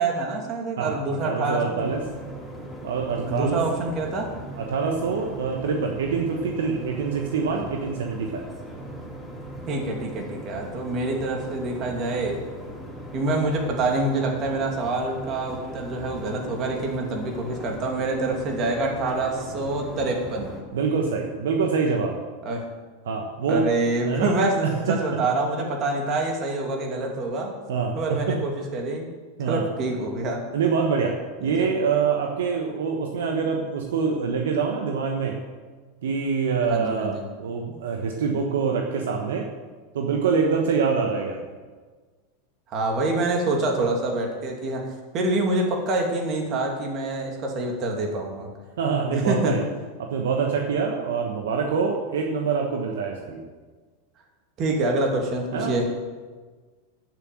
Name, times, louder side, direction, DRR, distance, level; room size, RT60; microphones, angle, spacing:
voice 1, 0.0-1.9 3.2-4.3 9.7-12.4 13.1-20.5 22.4-22.7 23.5-27.5 28.0-29.1 29.5-30.4 31.4-31.5 36.7-37.2 42.7-48.5 49.1-49.6 54.6-55.9, right 2 dB, 40° right, 1 dB, 2.7 m, -26 dB
voice 2, 0.8-2.0 2.8-3.6 4.6-8.4 20.7-22.2 23.0-23.7 24.0-25.0 27.7-28.4 29.4-29.7 30.5-31.1 31.4-35.4 36.0-37.1 37.4-39.5 39.9-41.4 48.8-49.6 50.0-53.4 55.5-55.7, right 5 dB, 75° right, 2 dB, 1.2 m, -25 dB
sound 1, 1.8-20.6, right 1 dB, 5° right, 3.0 m, -39 dB
9.0 x 7.4 x 7.7 m, 1.4 s
hypercardioid pair, 100°, 0 cm